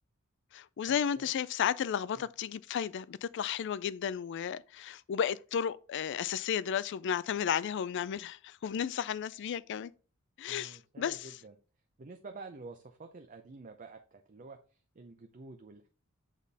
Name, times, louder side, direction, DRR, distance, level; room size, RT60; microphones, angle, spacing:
voice 1, 0.5-9.9 10.4-11.3, left 8 dB, 55° left, 0.3 m, -33 dB
voice 2, 10.5-11.6 12.0-15.9, right 3 dB, 40° right, 0.5 m, -49 dB
7.3 x 4.1 x 3.4 m
head